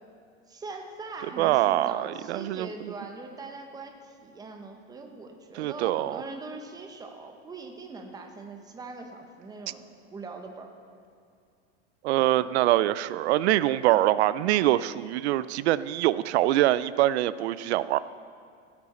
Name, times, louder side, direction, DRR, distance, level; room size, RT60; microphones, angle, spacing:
voice 1, 0.5-9.8 10.1-10.7 12.1-12.5, right 3 dB, 10° right, 4 dB, 0.9 m, -41 dB
voice 2, 1.4-2.9 5.5-6.2 12.0-18.0, right 14 dB, 80° right, 17 dB, 0.5 m, -24 dB
16.5 x 8.8 x 4.3 m, 2.3 s
supercardioid pair, 145°, 32 cm